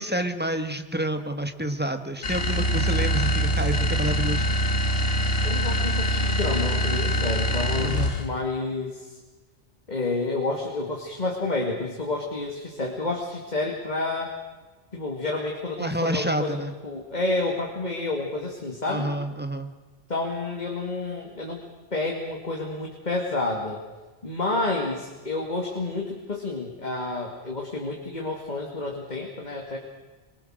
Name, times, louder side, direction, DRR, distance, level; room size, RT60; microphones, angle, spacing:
voice 1, 0.0-4.4 7.8-8.1 15.8-16.7 18.9-19.7, right 1 dB, 10° right, 7 dB, 1.4 m, -28 dB
sound 1, 2.2-8.4, equal, 60° left, 1.8 m, -24 dB
voice 2, 5.4-9.2 9.9-14.3 14.9-16.6 16.8-19.1 20.1-21.6 21.9-23.8 24.2-29.8, left 2 dB, 40° left, 0 dB, 2.6 m, -29 dB
24.0 x 23.0 x 6.5 m, 1.3 s
omnidirectional pair, 1.1 m